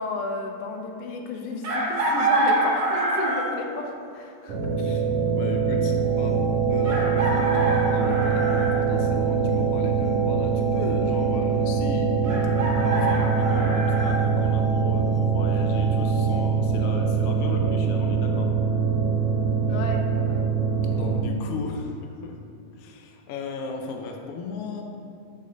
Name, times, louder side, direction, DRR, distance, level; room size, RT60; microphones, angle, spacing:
voice 1, 0.0-4.6 19.7-20.5, left 2 dB, 70° left, 2 dB, 1.4 m, -32 dB
Chicken rooster, 1.6-3.6 5.3-5.4 6.8-8.8 12.2-14.1, right 2 dB, 65° right, 2.8 m, -26 dB
sound 1, 4.5-21.2, right 5 dB, 80° right, 2.9 m, -23 dB
voice 2, 4.8-6.4 6.7-12.1 12.8-18.5 20.9-22.4 22.7-24.8, left 3 dB, 90° left, 2 dB, 1.3 m, -36 dB
sound 2, 6.0-16.9, left 3 dB, 45° left, 1.1 m, -38 dB
8.2 x 4.0 x 6.6 m, 2.4 s
omnidirectional pair, 3.4 m